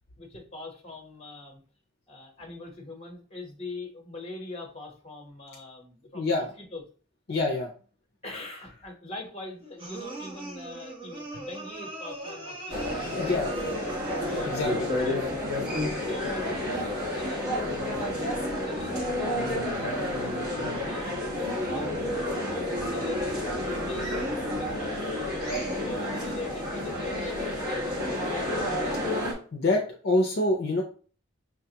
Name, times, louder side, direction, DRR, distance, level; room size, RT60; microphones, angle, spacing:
voice 1, 0.2-1.6 2.1-6.8 7.3-7.4 8.2-13.4 14.2-15.2 15.6-17.6 18.1-18.3 18.6-24.8 25.5-28.9 29.6-29.8, left 2 dB, 30° left, 2 dB, 0.9 m, -43 dB
voice 2, 6.1-6.5 7.3-7.7 13.2-13.5 14.5-14.9 29.5-30.8, left 2 dB, 50° left, 1 dB, 0.5 m, -26 dB
sound 1, 9.8-14.7, right 1 dB, 25° right, 0.9 m, -40 dB
sound 2, 12.7-29.3, left 1 dB, 50° right, 1.3 m, -30 dB
5.8 x 2.3 x 2.8 m, 0.41 s
head